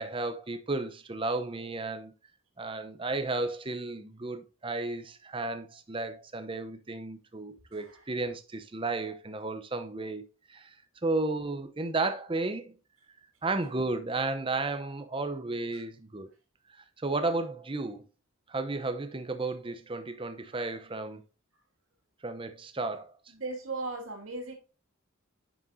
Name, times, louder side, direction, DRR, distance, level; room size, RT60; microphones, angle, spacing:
voice 1, 0.0-2.1 2.6-10.2 10.5-10.7 11.0-12.7 13.4-16.3 17.0-18.0 18.5-21.2 22.2-23.1, right 3 dB, 25° right, 0.7 m, -33 dB
voice 2, 7.7-8.1 15.7-15.8 23.3-24.5, right 3 dB, 80° right, 2.2 m, -38 dB
8.9 x 6.2 x 2.7 m
head